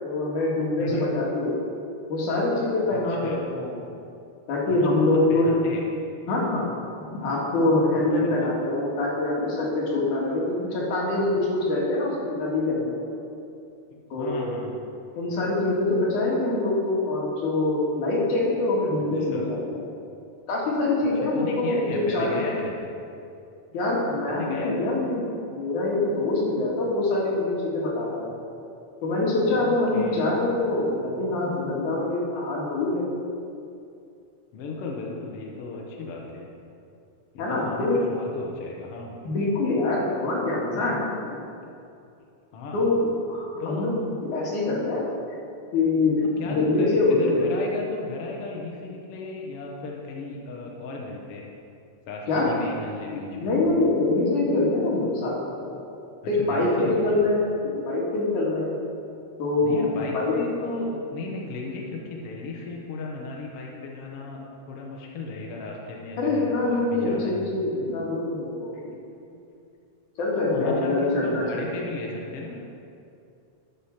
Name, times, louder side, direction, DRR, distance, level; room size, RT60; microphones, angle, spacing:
voice 1, 0.0-1.6 2.1-3.8 4.5-5.5 6.3-6.7 7.2-13.0 14.1-14.6 15.2-19.8 20.5-22.6 23.7-28.4 29.0-33.1 37.4-38.0 39.2-41.4 42.7-43.9 44.2-45.0 45.7-46.2 46.5-47.5 52.3-52.6 53.1-55.7 56.3-57.5 57.8-58.8 59.4-59.8 60.1-60.3 66.2-68.8 70.2-71.7, left 2 dB, 80° left, -4 dB, 3.4 m, -24 dB
voice 2, 0.8-1.1 2.9-3.4 4.9-5.8 8.2-8.4 14.2-14.8 19.2-19.4 21.2-22.9 24.3-24.9 29.5-30.3 34.5-36.5 37.3-39.1 42.5-42.9 43.6-43.9 46.4-51.4 52.1-53.5 56.4-57.1 59.6-64.4 64.7-67.3 68.7-68.8 69.3-69.4 70.3-72.5, left 3 dB, 60° left, -1 dB, 1.9 m, -35 dB
12.5 x 5.0 x 5.8 m, 2.5 s
omnidirectional pair, 3.4 m